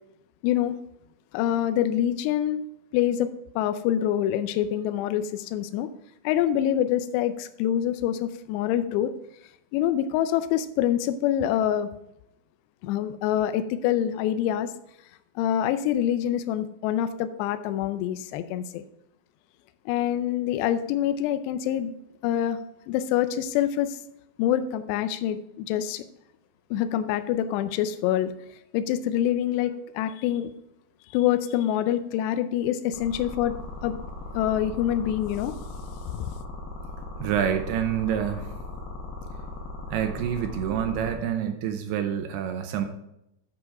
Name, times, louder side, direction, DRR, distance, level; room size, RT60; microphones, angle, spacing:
voice 1, 0.4-0.8 1.3-2.7 2.9-5.9 6.2-9.1 9.7-11.9 12.8-14.7 15.4-18.8 19.9-21.9 22.2-22.6 22.9-24.0 24.4-26.0 26.7-28.3 28.7-30.5 31.1-33.6 33.8-34.0 34.3-35.5 36.1-36.3, left 11 dB, 85° left, 11 dB, 2.7 m, -26 dB
sound 1, 32.9-41.1, left 3 dB, 65° left, 3.0 m, -38 dB
voice 2, 37.2-38.5 39.9-42.9, right 9 dB, 80° right, 6 dB, 2.5 m, -27 dB
8.6 x 5.0 x 4.6 m, 0.81 s
omnidirectional pair, 5.0 m